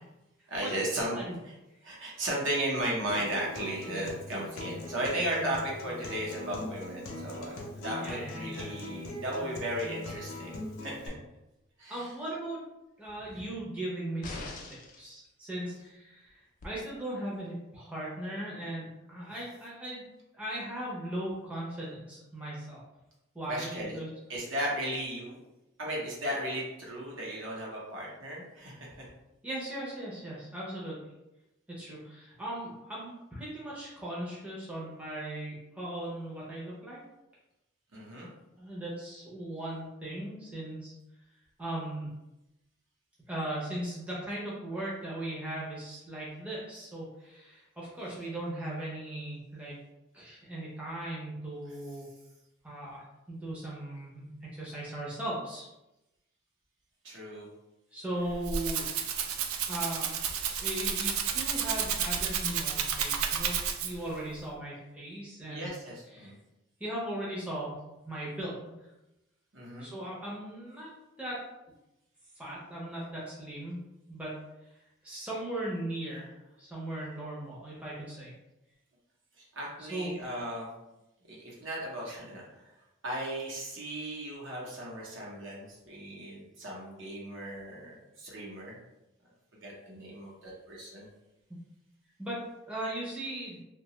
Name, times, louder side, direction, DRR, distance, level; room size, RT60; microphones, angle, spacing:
voice 1, 0.5-1.2 1.8-11.2 11.8-12.1 13.3-13.4 23.5-24.0 24.3-25.4 25.8-29.1 37.9-38.3 57.0-57.5 65.5-66.4 69.5-69.9 79.4-80.7 81.3-82.6 83.0-88.8 89.6-91.1, right 1 dB, 60° right, -4 dB, 0.8 m, -36 dB
Acoustic guitar, 3.1-11.1, left 2 dB, 90° left, 0.6 m, -41 dB
voice 2, 8.0-8.7 11.9-12.6 13.0-14.5 15.0-20.0 20.3-22.8 23.3-24.1 29.4-31.0 31.8-37.0 38.6-40.9 41.6-42.1 43.3-49.8 50.1-52.1 52.6-55.7 57.9-58.9 59.2-63.5 63.8-65.7 66.1-66.3 66.8-67.8 68.0-68.9 69.8-70.9 71.2-71.4 72.3-73.8 74.1-74.4 74.7-74.8 75.0-76.3 76.6-78.3 79.9-80.1 92.2-93.6, right 1 dB, 5° right, -6 dB, 0.6 m, -38 dB
sound 1, 14.2-15.1 16.6-16.7, left 3 dB, 40° left, 0.3 m, -41 dB
Rattle (instrument), 58.2-64.1, right 7 dB, 85° right, 0.3 m, -31 dB
2.7 x 2.2 x 2.9 m, 0.94 s
head